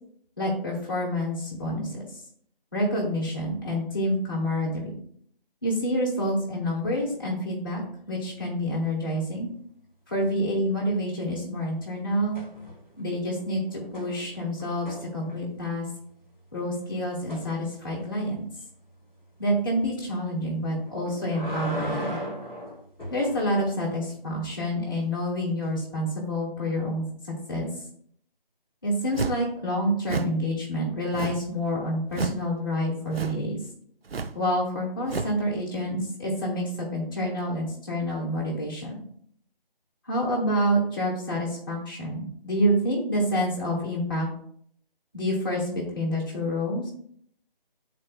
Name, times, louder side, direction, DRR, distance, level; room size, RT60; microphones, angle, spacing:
voice 1, 0.4-2.0 2.7-4.9 5.6-9.5 10.1-12.4 13.0-15.9 16.5-18.4 19.4-22.2 23.1-27.0 27.5-27.7 28.8-33.6 34.3-39.0 40.0-44.3 45.1-46.9, equal, 25° left, -3 dB, 1.6 m, -28 dB
sound 1, 12.3-13.0 13.3-15.7 17.3-17.5 20.9-23.4 25.6-25.7, equal, ahead, 2.3 m, -37 dB
sound 2, 29.1-29.5 30.0-30.4 31.1-31.5 32.1-32.5 33.1-33.5 34.1-34.4 35.1-35.4, right 4 dB, 90° right, 0.5 m, -31 dB
11.0 x 4.2 x 2.3 m, 0.63 s
figure-of-eight pair, 165°, 29 cm